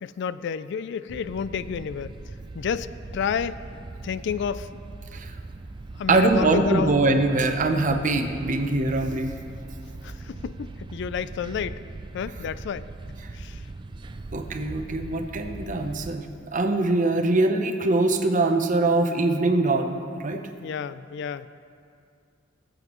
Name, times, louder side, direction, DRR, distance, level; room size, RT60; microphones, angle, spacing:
voice 1, 0.0-2.2 2.5-3.6 4.0-4.7 6.0-7.0 10.0-11.8 12.1-12.9 13.3-13.6 20.6-21.5, left 7 dB, 65° left, 15 dB, 0.3 m, -30 dB
sound 1, 1.1-16.2, right 2 dB, 25° right, 0.3 m, -40 dB
voice 2, 6.1-9.4 14.3-16.3 16.5-20.4, right 2 dB, 40° right, 6 dB, 0.7 m, -23 dB
19.5 x 7.8 x 3.1 m, 2.4 s
head